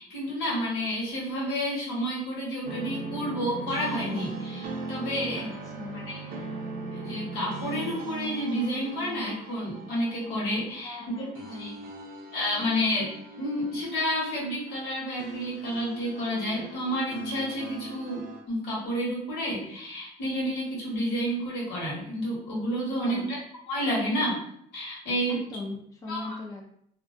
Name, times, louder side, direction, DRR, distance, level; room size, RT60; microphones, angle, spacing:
voice 1, 0.0-5.5 5.9-6.3 6.9-11.3 11.5-11.7 12.3-23.4 23.7-24.4 24.7-25.4 26.1-26.3, equal, 80° left, -5 dB, 1.2 m, -30 dB
sound 1, 2.6-18.4, right 3 dB, 60° right, 0.5 m, -39 dB
voice 2, 5.8-6.1 10.8-11.8 23.0-23.3 25.3-26.6, left 2 dB, 20° left, -1 dB, 0.5 m, -39 dB
2.3 x 2.2 x 2.5 m, 0.69 s
cardioid pair, 110°, 17 cm